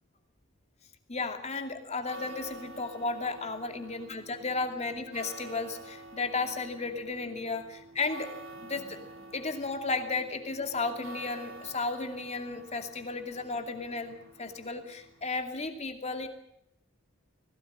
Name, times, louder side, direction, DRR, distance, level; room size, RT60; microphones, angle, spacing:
voice 1, 1.1-8.3 8.6-9.0 9.3-14.1 14.4-16.3, left 3 dB, 35° left, 6 dB, 2.6 m, -34 dB
sound 1, 1.8-15.4, right 2 dB, 80° right, 3.6 m, -49 dB
20.0 x 17.0 x 8.7 m, 0.73 s
head